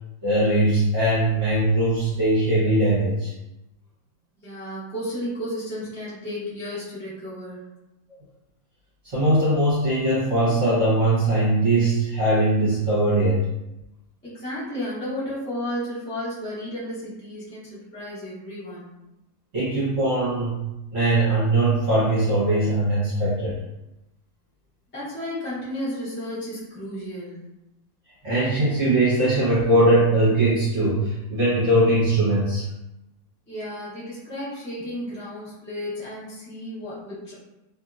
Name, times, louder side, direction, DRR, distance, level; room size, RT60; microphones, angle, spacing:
voice 1, 0.2-3.3 9.0-13.4 19.5-20.7 20.9-23.5 28.2-32.7, right 1 dB, 55° right, -11 dB, 1.3 m, -20 dB
voice 2, 4.4-7.7 14.2-18.9 24.9-27.4 33.5-37.3, equal, 10° left, -10 dB, 0.7 m, -33 dB
2.8 x 2.6 x 2.4 m, 0.94 s
omnidirectional pair, 1.8 m